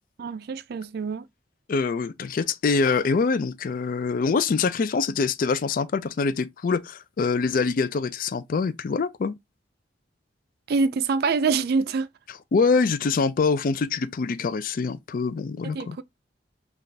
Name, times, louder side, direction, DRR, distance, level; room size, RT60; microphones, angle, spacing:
voice 1, 0.2-1.2 10.7-12.1 15.6-16.0, right 4 dB, 55° right, 0.3 m, -25 dB
voice 2, 1.7-9.3 12.3-16.0, left 4 dB, 45° left, 0.4 m, -24 dB
3.3 x 2.4 x 3.9 m
head